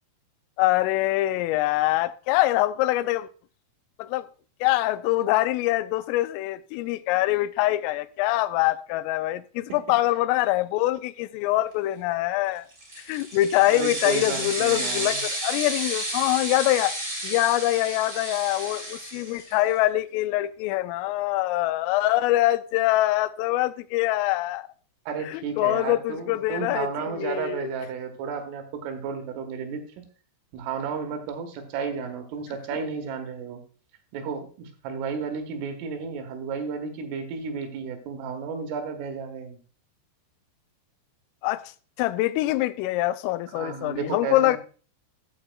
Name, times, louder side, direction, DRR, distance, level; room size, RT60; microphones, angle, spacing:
voice 1, 0.6-3.3 4.0-4.3 4.6-12.7 13.1-17.0 17.2-24.7 25.3-27.7 41.4-41.6 42.0-44.6, left 16 dB, 85° left, 3.1 m, -24 dB
sound 1, 12.7-19.7, right 1 dB, 15° right, 3.3 m, -32 dB
voice 2, 13.7-15.2 25.1-30.1 30.5-33.6 34.1-39.6 43.6-44.6, right 6 dB, 80° right, 4.0 m, -33 dB
14.5 x 8.7 x 2.3 m
omnidirectional pair, 5.7 m